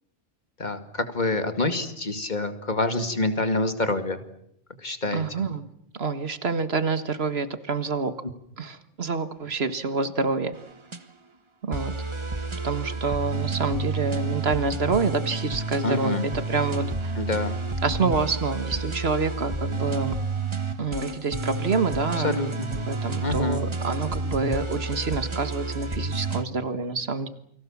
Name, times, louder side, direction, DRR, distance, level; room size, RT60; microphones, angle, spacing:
voice 1, 0.6-4.2 4.8-5.2 15.8-16.2 17.2-17.6 22.2-22.7 23.2-23.7, left 2 dB, 40° left, 8 dB, 2.4 m, -26 dB
voice 2, 5.1-5.6 5.9-8.1 8.6-10.6 11.6-11.9 12.6-17.2 17.8-20.2 20.8-22.4 22.7-27.3, right 4 dB, 60° right, 11 dB, 1.8 m, -27 dB
sound 1, 10.5-11.0 11.7-26.4, right 3 dB, 25° right, 1.3 m, -30 dB
29.0 x 24.0 x 7.3 m, 0.73 s
omnidirectional pair, 1.2 m